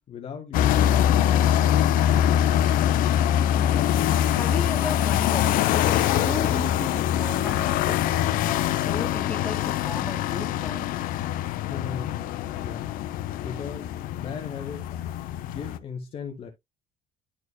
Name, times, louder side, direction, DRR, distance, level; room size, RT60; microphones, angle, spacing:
voice 1, 0.1-1.6 11.7-12.9 13.4-14.9 15.4-16.5, left 6 dB, 40° left, 1.2 m, -37 dB
sound 1, 0.5-15.8, left 11 dB, 65° left, 0.7 m, -23 dB
voice 2, 3.5-4.0 4.3-8.0 8.4-10.9, left 2 dB, 5° left, 2.1 m, -35 dB
11.0 x 4.6 x 2.2 m
cardioid pair, 145°, 15 cm